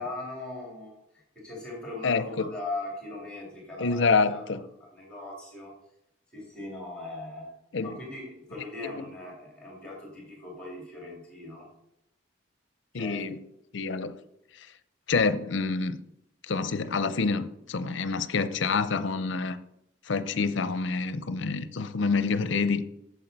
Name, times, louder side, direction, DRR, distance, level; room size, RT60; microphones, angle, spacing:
voice 1, 0.0-4.4 4.9-5.7 6.3-7.5 7.8-11.7 12.9-13.2, left 2 dB, 5° left, -3 dB, 2.4 m, -39 dB
voice 2, 2.0-2.5 3.8-4.7 7.7-7.9 8.8-9.1 12.9-13.4 13.7-14.2 14.6-14.7 15.1-16.0 16.5-19.6 20.1-22.8, left 4 dB, 65° left, 13 dB, 0.6 m, -27 dB
8.7 x 7.2 x 4.0 m, 0.80 s
head